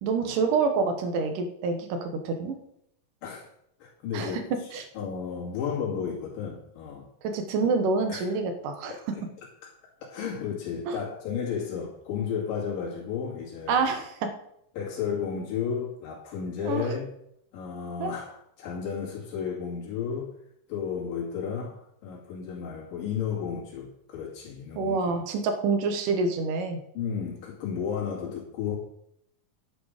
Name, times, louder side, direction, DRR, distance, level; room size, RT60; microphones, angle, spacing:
voice 1, 0.0-2.5 4.1-4.4 4.7-4.9 7.2-8.9 10.9-11.0 13.7-14.3 16.6-16.9 18.0-18.1 24.8-26.8, right 4 dB, 75° right, 6 dB, 2.8 m, -27 dB
voice 2, 3.8-4.4 4.7-7.1 7.6-7.7 8.1-8.2 8.9-9.2 9.6-9.7 10.0-13.8 14.7-17.1 17.5-20.3 20.7-25.2 26.9-28.8, left 7 dB, 80° left, -5 dB, 4.0 m, -33 dB
11.0 x 8.2 x 5.0 m, 0.75 s
omnidirectional pair, 3.8 m